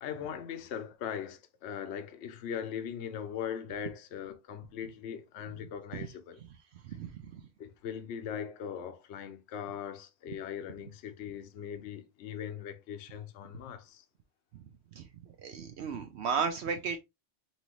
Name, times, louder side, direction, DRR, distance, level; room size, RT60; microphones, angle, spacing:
voice 1, 0.0-6.4 7.6-14.0, left 8 dB, 65° left, 0.9 m, -40 dB
voice 2, 6.8-7.4 14.5-14.6 15.0-15.1 15.4-17.0, right 6 dB, 65° right, 0.8 m, -34 dB
5.5 x 2.6 x 3.0 m
omnidirectional pair, 1.3 m